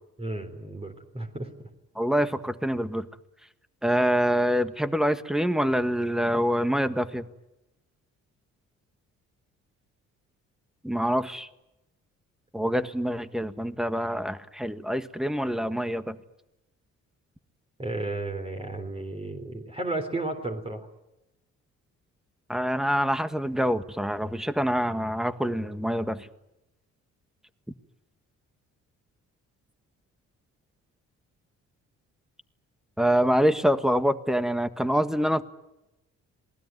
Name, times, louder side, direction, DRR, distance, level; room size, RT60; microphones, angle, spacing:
voice 1, 0.2-1.5 17.8-20.9, right 2 dB, 20° right, 5 dB, 3.8 m, -33 dB
voice 2, 1.9-3.1 3.8-7.3 10.8-11.5 12.5-16.2 22.5-26.3 33.0-35.4, equal, ahead, 11 dB, 1.6 m, -25 dB
27.0 x 19.5 x 9.4 m, 0.93 s
cardioid pair, 90°, 30 cm